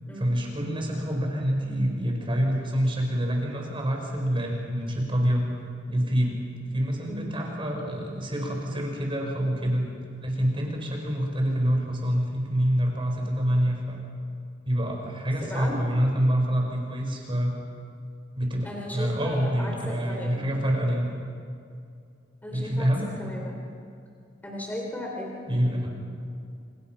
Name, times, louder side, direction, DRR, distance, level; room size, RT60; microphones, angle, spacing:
voice 1, 0.2-5.5 5.9-6.4 6.7-9.9 10.2-14.0 14.7-17.5 18.3-21.1 22.5-23.1 25.5-25.9, equal, 30° right, 1 dB, 5.0 m, -26 dB
voice 2, 15.4-15.8 18.6-20.5 22.4-22.9 23.2-23.6 24.4-25.9, left 1 dB, 10° left, -1 dB, 3.9 m, -36 dB
29.5 x 29.0 x 5.9 m, 2.5 s
head